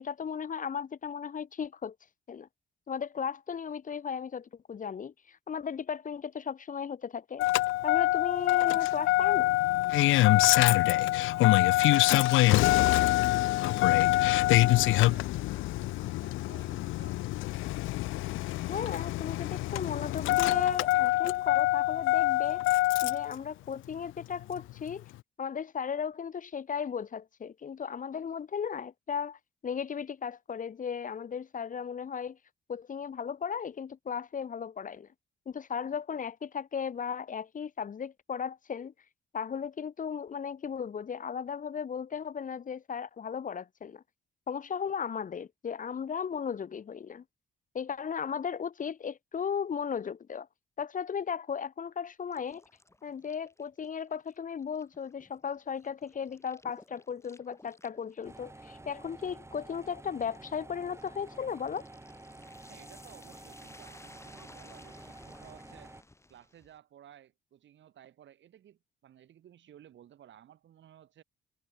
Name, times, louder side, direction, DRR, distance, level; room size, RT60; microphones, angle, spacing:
voice 1, 0.0-1.9 2.3-2.5 2.9-7.5 7.8-9.5 18.7-22.6 23.0-25.1 25.4-32.4 32.7-35.1 35.5-38.9 39.3-44.0 44.5-47.2 47.7-50.5 50.8-52.6 53.0-61.8, left 7 dB, 40° left, 1.1 m, -36 dB
Engine starting, 7.4-23.3 24.6-24.7, left 18 dB, 80° left, 0.4 m, -25 dB
voice 2, 10.8-17.2 62.7-66.0 66.3-71.2, right 11 dB, 70° right, 4.1 m, -57 dB
sound 1, 52.3-66.8, left 2 dB, 15° left, 2.9 m, -58 dB
sound 2, 58.2-66.0, right 2 dB, 15° right, 4.3 m, -50 dB
cardioid pair, 90°, 20 cm